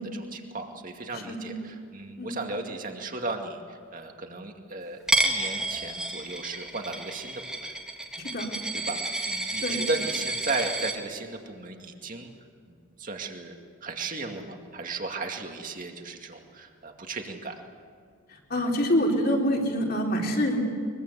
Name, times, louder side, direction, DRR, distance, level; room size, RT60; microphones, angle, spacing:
voice 1, 0.0-7.7 8.7-12.3 12.7-13.6 13.8-17.6, right 3 dB, 40° right, 3 dB, 2.3 m, -35 dB
voice 2, 1.1-1.6 2.2-2.4 8.2-8.5 9.6-9.8 18.3-20.6, equal, 45° left, 0 dB, 3.7 m, -26 dB
Coin (dropping), 5.1-10.9, right 1 dB, 5° right, 1.7 m, -30 dB
23.0 x 23.0 x 8.2 m, 2.2 s
head